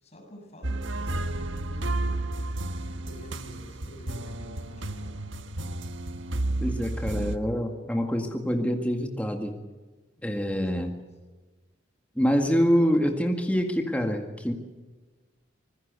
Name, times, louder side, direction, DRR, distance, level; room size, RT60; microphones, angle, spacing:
voice 1, 0.0-2.3 3.0-5.1 10.2-10.4 10.7-10.8, equal, 35° left, 2 dB, 7.1 m, -49 dB
sound 1, 0.6-7.4, right 2 dB, 85° right, 1.5 m, -32 dB
voice 2, 6.6-9.6 10.2-11.0 12.2-14.5, equal, 5° left, 3 dB, 2.0 m, -26 dB
25.5 x 20.5 x 8.3 m, 1.3 s
head